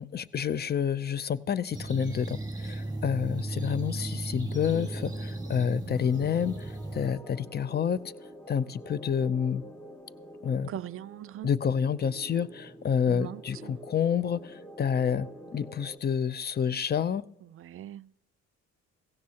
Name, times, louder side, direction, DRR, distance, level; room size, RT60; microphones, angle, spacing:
voice 1, 0.0-8.1 8.5-9.6 10.4-10.7 11.4-17.3, left 7 dB, 35° left, 0.5 m, -29 dB
sound 1, 1.7-7.1, right 2 dB, 15° right, 1.7 m, -35 dB
sound 2, 4.5-16.0, equal, 10° left, 1.3 m, -48 dB
voice 2, 10.7-11.5 13.1-13.8 17.5-18.1, right 12 dB, 45° right, 0.4 m, -40 dB
16.0 x 16.0 x 2.9 m
cardioid pair, 90°, 30 cm